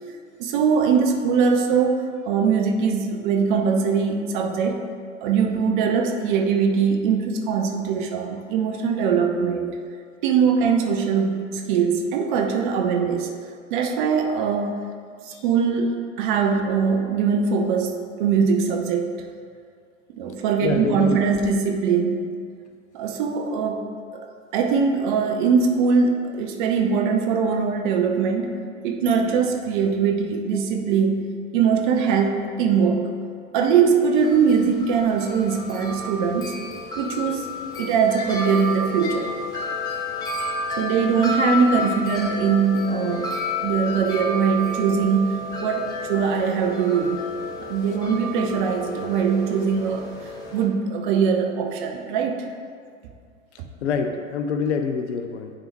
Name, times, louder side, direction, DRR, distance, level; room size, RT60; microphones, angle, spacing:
voice 1, 0.4-4.8 5.2-9.8 10.2-13.3 13.7-14.9 15.2-19.1 20.2-22.3 22.9-24.3 24.5-28.6 28.8-33.1 33.5-36.6 37.0-37.5 37.8-39.3 40.8-43.3 43.6-47.3 47.6-50.1 50.5-52.5 53.6-53.7, right 6 dB, 40° right, 3 dB, 0.6 m, -22 dB
voice 2, 20.6-21.2 53.8-55.5, left 6 dB, 60° left, 6 dB, 0.6 m, -26 dB
Wind chime, 34.2-50.6, left 2 dB, 10° left, 0.4 m, -31 dB
9.8 x 3.5 x 3.0 m, 2.1 s
figure-of-eight pair, 90°, 39 cm